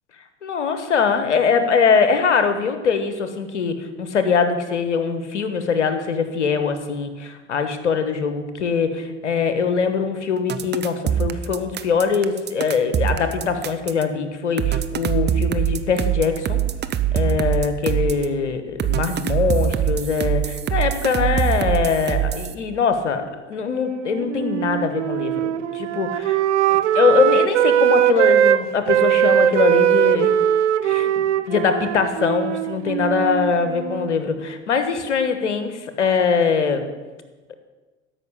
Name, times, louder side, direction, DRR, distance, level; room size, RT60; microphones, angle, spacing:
voice 1, 0.4-16.6 17.1-26.4 26.7-30.3 30.8-36.9 37.5-37.6, left 5 dB, 85° left, 9 dB, 1.3 m, -22 dB
sound 1, 10.5-14.0 14.6-18.3 18.8-22.5, right 10 dB, 30° right, 0.8 m, -23 dB
Wind instrument woodwind instrument, 23.7-28.6 28.9-34.2, right 10 dB, 80° right, 0.7 m, -20 dB
13.0 x 6.0 x 8.4 m, 1.2 s
hypercardioid pair, 70°, 35 cm